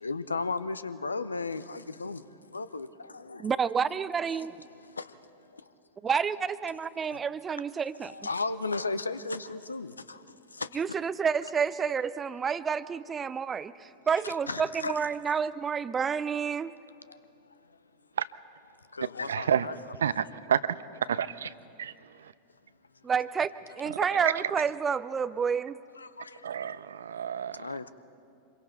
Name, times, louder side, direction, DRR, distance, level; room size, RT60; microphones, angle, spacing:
voice 1, 0.0-2.2 2.5-2.9 3.1-3.9 5.0-5.1 6.6-6.7 7.1-7.2 8.0-10.2 10.6-10.7 14.2-15.1 18.9-19.8 20.0-20.2 26.0-26.3 27.6-27.9, left 3 dB, 80° left, 15 dB, 0.6 m, -35 dB
voice 2, 3.4-4.6 6.0-8.1 10.7-16.7 23.0-25.8, right 6 dB, 20° right, 16 dB, 0.5 m, -29 dB
voice 3, 19.3-19.7 20.0-20.6 21.1-21.5 21.8-21.9 24.1-24.3 26.4-27.7, right 8 dB, 65° right, 16 dB, 0.5 m, -29 dB
26.5 x 22.5 x 4.5 m, 2.5 s
figure-of-eight pair, 90°, 0 cm